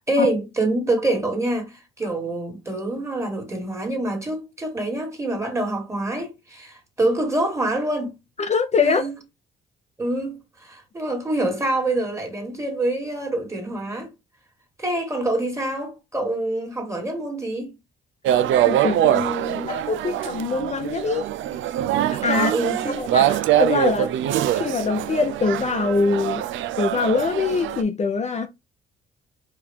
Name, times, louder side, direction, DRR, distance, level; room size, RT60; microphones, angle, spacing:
voice 1, 0.1-8.2 8.8-9.2 10.0-14.1 14.8-17.7 19.0-19.7 22.3-23.2, right 1 dB, 15° right, 1.8 m, -26 dB
voice 2, 8.4-9.0 18.6-19.1 19.7-21.3 22.0-22.5 22.9-24.1 24.5-26.4 26.8-28.5, left 4 dB, 35° left, 0.6 m, -23 dB
sound 1, 18.3-27.8, right 12 dB, 75° right, 0.5 m, -23 dB
4.6 x 2.5 x 3.5 m
cardioid pair, 90°, 20 cm